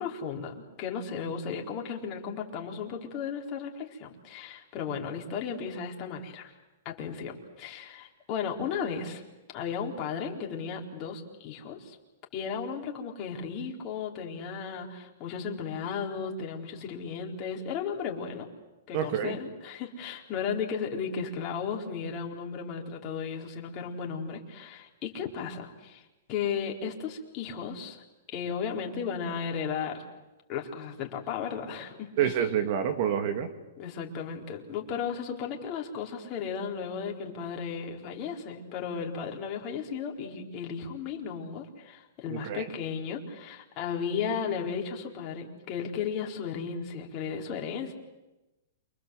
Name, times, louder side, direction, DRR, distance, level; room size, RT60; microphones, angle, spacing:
voice 1, 0.0-6.6 6.8-9.2 9.5-12.0 12.3-18.5 18.9-26.0 26.3-30.0 30.5-32.3 33.8-47.9, left 6 dB, 35° left, 1 dB, 4.4 m, -35 dB
voice 2, 18.9-19.4 32.2-33.5 42.3-42.7, right 9 dB, 50° right, 8 dB, 2.6 m, -28 dB
29.0 x 25.0 x 8.0 m, 1.0 s
hypercardioid pair, 140°, 0 cm